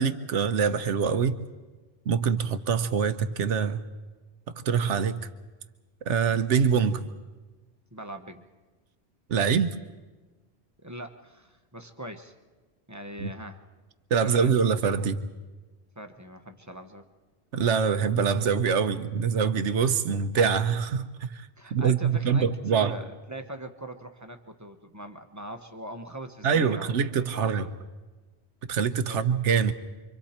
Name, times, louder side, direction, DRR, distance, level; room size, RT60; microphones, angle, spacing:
voice 1, 0.0-1.4 2.1-3.8 4.7-5.2 6.1-7.0 9.3-9.7 13.2-13.3 14.1-15.3 17.5-22.9 26.4-27.7 28.7-29.7, right 6 dB, 80° right, 10 dB, 1.2 m, -24 dB
voice 2, 7.9-8.4 10.8-12.3 12.9-13.6 14.2-14.5 16.0-17.0 21.6-26.9 27.3-27.7 29.1-29.3, right 1 dB, 15° right, 6 dB, 1.0 m, -41 dB
28.5 x 24.5 x 4.4 m, 1.3 s
omnidirectional pair, 1.2 m